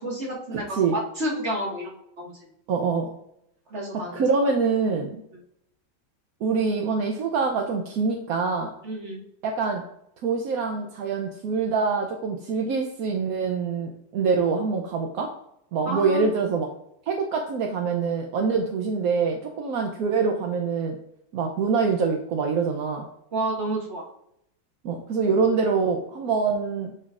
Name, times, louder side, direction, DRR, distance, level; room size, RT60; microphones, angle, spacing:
voice 1, 0.0-2.3 3.7-4.2 8.8-9.2 15.9-16.3 23.3-24.1, right 1 dB, 35° right, -3 dB, 2.0 m, -30 dB
voice 2, 2.7-3.1 3.9-5.2 6.4-8.7 9.4-9.8 10.2-15.3 15.7-16.7 17.1-21.0 21.3-23.0 24.8-26.9, right 5 dB, 65° right, 2 dB, 1.0 m, -25 dB
9.4 x 5.5 x 2.5 m, 0.76 s
omnidirectional pair, 2.0 m